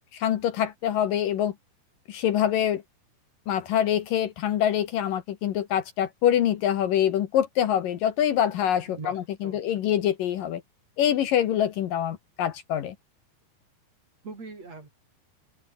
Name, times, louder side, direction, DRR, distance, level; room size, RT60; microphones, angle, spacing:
voice 1, 0.1-1.5 2.1-2.8 3.5-10.6 11.0-13.0, left 10 dB, 65° left, 2.8 m, -25 dB
voice 2, 8.9-9.6 14.2-14.9, right 3 dB, 40° right, 6.8 m, -41 dB
open air
omnidirectional pair, 4.5 m